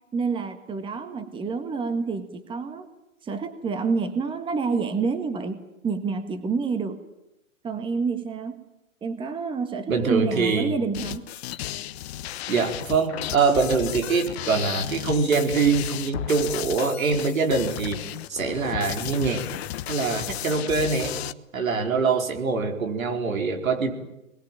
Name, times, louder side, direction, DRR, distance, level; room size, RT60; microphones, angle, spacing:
voice 1, 0.1-2.9 3.2-7.0 7.6-8.6 9.0-11.2, right 4 dB, 10° right, 9 dB, 1.6 m, -28 dB
voice 2, 9.9-10.7 12.5-18.0 18.3-19.4 19.9-21.1 21.5-23.9, right 4 dB, 80° right, 4 dB, 4.8 m, -24 dB
sound 1, 10.9-21.3, left 13 dB, 50° left, 1.1 m, -34 dB
24.0 x 21.5 x 9.1 m, 0.92 s
hypercardioid pair, 130°, 41 cm